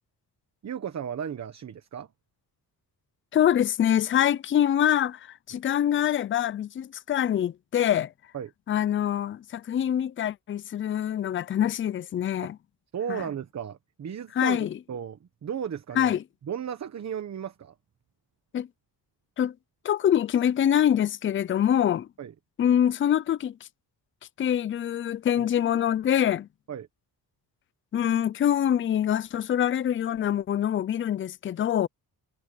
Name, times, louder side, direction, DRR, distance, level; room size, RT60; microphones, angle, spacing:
voice 1, 0.6-2.1 8.3-8.5 12.9-14.6 14.9-16.2 16.4-17.7 22.2-22.3 25.4-25.5 26.7-26.9, right 8 dB, 45° right, 1.2 m, -35 dB
voice 2, 3.3-5.2 5.5-8.1 8.7-12.6 13.1-13.2 14.4-14.8 16.0-16.2 18.5-18.7 19.4-19.5 19.8-22.1 22.6-23.5 24.4-26.5 27.9-31.9, left 10 dB, 35° left, 0.4 m, -25 dB
wide cardioid pair, 160°, 39 cm